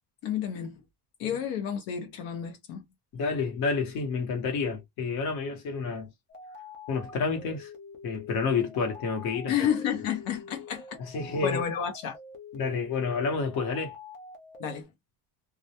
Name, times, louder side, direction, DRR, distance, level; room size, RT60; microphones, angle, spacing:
voice 1, 0.2-0.7 1.2-2.8 9.5-11.0 11.4-12.2 14.6-14.9, left 9 dB, 85° left, 0.8 m, -30 dB
voice 2, 3.1-6.1 6.9-7.7 8.0-9.5 11.0-11.6 12.5-13.9, left 4 dB, 55° left, 1.1 m, -29 dB
sound 1, 6.3-14.8, left 3 dB, 30° left, 0.4 m, -46 dB
2.3 x 2.1 x 2.7 m
cardioid pair, 180°, 43 cm